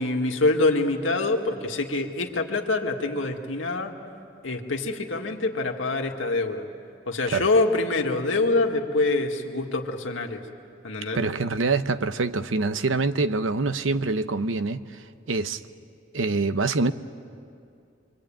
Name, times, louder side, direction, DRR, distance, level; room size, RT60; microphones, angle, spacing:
voice 1, 0.0-3.9 4.4-6.7 7.1-10.4 10.8-11.2, left 2 dB, 90° left, 3 dB, 2.0 m, -25 dB
voice 2, 11.1-15.6 16.1-16.9, right 3 dB, 90° right, 11 dB, 0.9 m, -25 dB
26.0 x 24.5 x 8.9 m, 2.4 s
head